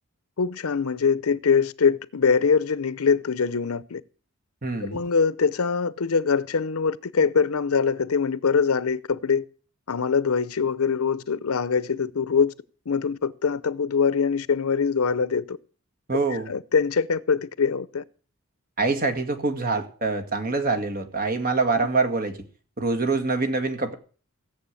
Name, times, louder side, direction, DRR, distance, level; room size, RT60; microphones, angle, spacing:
voice 1, 0.4-4.0 4.8-9.4 9.9-12.5 12.9-15.6 16.5-18.0, left 5 dB, 80° left, 0.7 m, -23 dB
voice 2, 4.6-5.0 16.1-16.5 18.8-22.4 22.8-23.9, right 3 dB, 40° right, 2.0 m, -25 dB
17.0 x 7.0 x 8.4 m
head